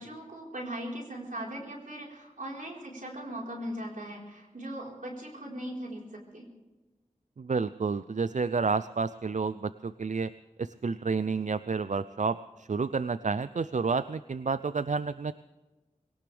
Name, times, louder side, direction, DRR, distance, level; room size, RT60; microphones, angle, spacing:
voice 1, 0.0-6.0 6.3-6.5, right 1 dB, 85° right, -2 dB, 4.4 m, -39 dB
voice 2, 7.4-10.3 10.6-15.3, right 4 dB, 65° right, 14 dB, 0.4 m, -30 dB
22.0 x 18.0 x 3.4 m, 1.2 s
wide cardioid pair, 50°, 13 cm